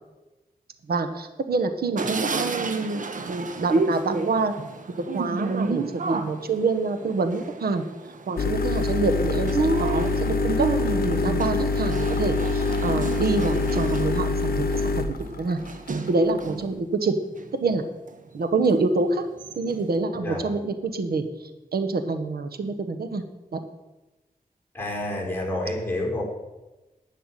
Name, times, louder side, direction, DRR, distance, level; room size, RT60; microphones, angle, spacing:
voice 1, 0.9-3.0 3.3-4.5 5.1-7.9 8.3-10.7 11.1-15.6 16.1-17.2 17.5-17.8 18.3-19.2 19.6-21.2 21.7-23.2 23.5-23.6, right 3 dB, 90° right, 8 dB, 1.2 m, -26 dB
sound 1, 2.0-16.7 17.2-18.1 18.7-18.8 19.1-19.9, right 3 dB, 55° right, 1.1 m, -31 dB
sound 2, 8.4-16.6, left 3 dB, 80° left, 0.8 m, -25 dB
voice 2, 20.1-20.5 24.7-26.2, left 1 dB, 15° left, -2 dB, 4.6 m, -29 dB
11.5 x 5.7 x 9.0 m, 1.1 s
wide cardioid pair, 85°, 16 cm